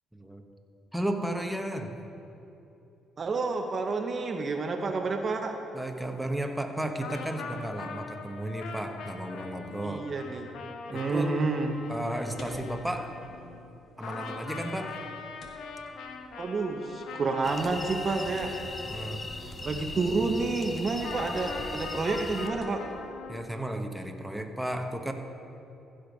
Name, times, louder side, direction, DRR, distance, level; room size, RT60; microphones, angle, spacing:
voice 1, 0.1-0.4 0.9-1.9 4.7-4.9 5.7-10.0 10.9-11.3 11.9-13.1 14.0-15.0 18.9-19.2 23.3-25.1, right 1 dB, 5° right, 4 dB, 1.1 m, -33 dB
voice 2, 3.2-5.6 9.8-10.5 10.9-11.7 16.4-18.5 19.6-22.8, right 3 dB, 45° right, 5 dB, 0.8 m, -29 dB
sound 1, 7.0-13.8 14.0-20.0 21.0-23.4, left 5 dB, 75° left, 0.9 m, -42 dB
sound 2, 11.7-23.1, left 2 dB, 55° left, 1.5 m, -53 dB
sound 3, 17.4-22.5, left 2 dB, 30° left, 0.8 m, -39 dB
15.5 x 5.1 x 5.3 m, 3.0 s
supercardioid pair, 70°, 0 cm